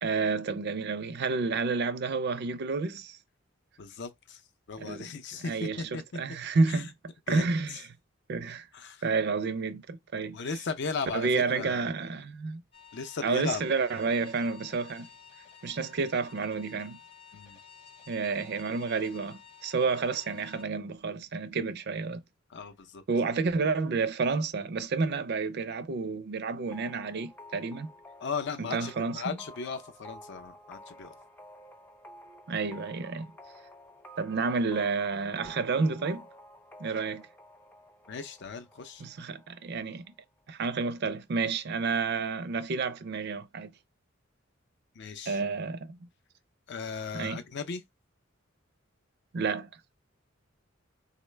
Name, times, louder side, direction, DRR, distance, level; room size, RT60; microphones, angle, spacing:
voice 1, 0.0-3.2 4.8-5.1 5.4-6.9 7.3-7.8 8.3-8.7 9.0-10.4 11.1-12.6 13.2-15.1 15.6-17.0 18.1-22.2 23.1-27.9 28.6-29.4 32.5-33.3 34.2-36.2 36.8-37.3 39.0-40.0 40.5-43.7 45.3-46.0 47.1-47.4 49.3-49.7, right 4 dB, 55° right, 0.4 m, -30 dB
voice 2, 3.8-4.4 4.7-6.2 6.7-6.8 7.3-7.8 8.7-9.0 10.3-11.9 12.9-13.6 17.3-17.6 22.5-23.0 28.2-31.1 38.1-39.1 45.0-45.4 46.7-47.8, left 4 dB, 60° left, 0.5 m, -37 dB
sound 1, 12.7-20.6, left 7 dB, 30° left, 0.8 m, -53 dB
sound 2, 26.7-40.2, equal, 10° left, 0.3 m, -51 dB
3.8 x 2.1 x 3.2 m
head